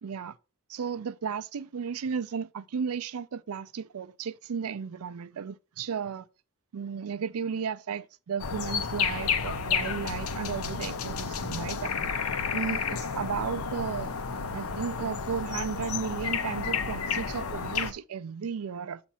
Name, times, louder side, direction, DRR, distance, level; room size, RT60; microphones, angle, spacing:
voice 1, 0.0-0.4 0.7-6.3 6.7-11.9 12.5-14.1 14.5-19.0, right 6 dB, 85° right, 0.4 m, -34 dB
sound 1, 8.4-17.9, left 5 dB, 85° left, 0.7 m, -31 dB
7.2 x 2.6 x 5.5 m
head